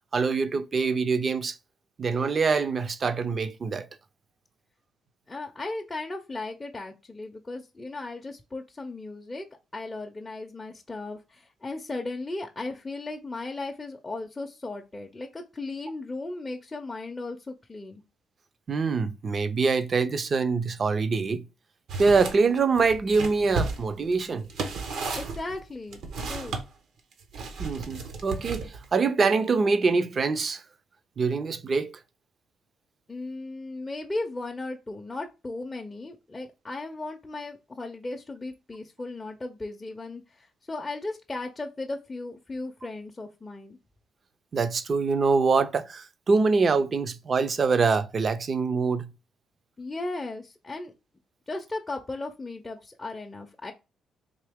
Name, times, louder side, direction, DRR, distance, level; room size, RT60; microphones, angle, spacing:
voice 1, 0.1-1.6 2.0-3.9 18.7-21.4 22.0-24.5 27.6-30.6 31.2-31.9 44.5-49.1, right 4 dB, 45° right, 0.5 m, -24 dB
voice 2, 5.3-9.5 9.7-18.0 25.2-26.0 26.3-26.6 33.1-43.8 49.8-50.9 51.5-53.7, left 2 dB, 20° left, 0.5 m, -36 dB
sound 1, 21.9-22.4 22.8-26.6 27.3-28.9, right 4 dB, 75° right, 0.8 m, -33 dB
3.8 x 2.8 x 3.5 m
cardioid pair, 90°, 0 cm